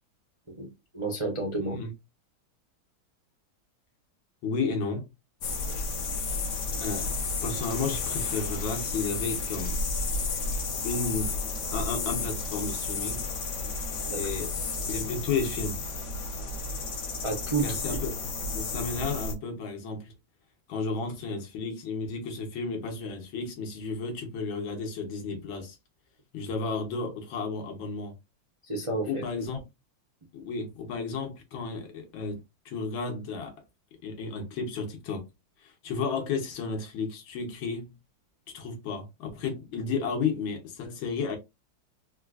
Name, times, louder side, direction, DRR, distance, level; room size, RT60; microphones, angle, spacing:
voice 1, 0.9-1.8 14.1-14.2 17.2-18.0 28.7-29.2, right 3 dB, 45° right, 0.3 m, -30 dB
voice 2, 1.6-1.9 4.4-5.1 6.7-7.1 7.4-9.8 10.8-11.4 11.7-13.3 14.1-14.5 14.9-15.8 17.6-18.1 18.5-20.1 20.7-25.8 26.3-28.1 29.0-29.6 30.3-33.5 34.0-35.3 35.6-37.9 38.5-41.4, left 4 dB, 85° left, 1.7 m, -33 dB
sound 1, 5.4-19.3, left 3 dB, 60° left, 0.8 m, -32 dB
4.2 x 2.4 x 2.3 m
omnidirectional pair, 2.2 m